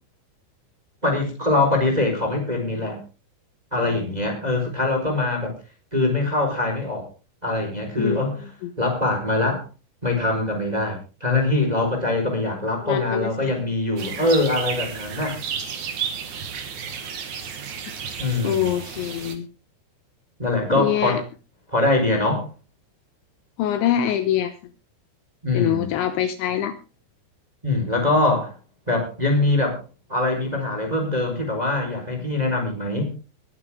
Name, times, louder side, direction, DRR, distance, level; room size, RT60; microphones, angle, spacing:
voice 1, 1.0-3.0 3.7-5.5 5.9-7.1 7.4-8.4 8.8-9.6 10.0-15.4 18.2-18.7 20.4-21.2 21.7-22.5 25.4-25.9 27.6-28.5 28.9-29.8 30.1-33.1, left 2 dB, 10° right, 2 dB, 3.6 m, -23 dB
voice 2, 12.8-13.5 18.4-19.5 20.7-21.2 23.6-24.5 25.5-26.7, left 10 dB, 75° left, 10 dB, 3.0 m, -24 dB
sound 1, 14.0-19.3, right 7 dB, 55° right, 2.3 m, -32 dB
21.5 x 9.6 x 3.6 m, 0.32 s
omnidirectional pair, 5.8 m